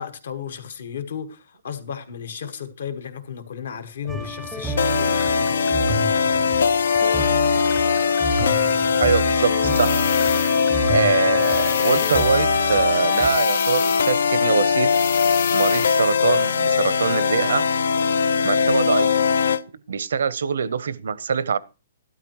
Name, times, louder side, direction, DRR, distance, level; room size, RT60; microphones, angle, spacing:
voice 1, 0.0-6.0, left 8 dB, 65° left, 1.4 m, -34 dB
sound 1, 4.1-13.3, right 2 dB, ahead, 0.5 m, -30 dB
sound 2, 4.8-19.6, left 6 dB, 85° left, 0.5 m, -20 dB
voice 2, 9.0-10.0 10.8-14.9 15.5-17.7 18.4-19.2 19.9-21.6, right 6 dB, 80° right, 0.6 m, -23 dB
sound 3, 9.6-10.8 11.4-12.5 13.1-14.3 14.9-16.1, left 8 dB, 50° left, 1.0 m, -31 dB
13.5 x 12.0 x 3.0 m
hypercardioid pair, 175°, 0 cm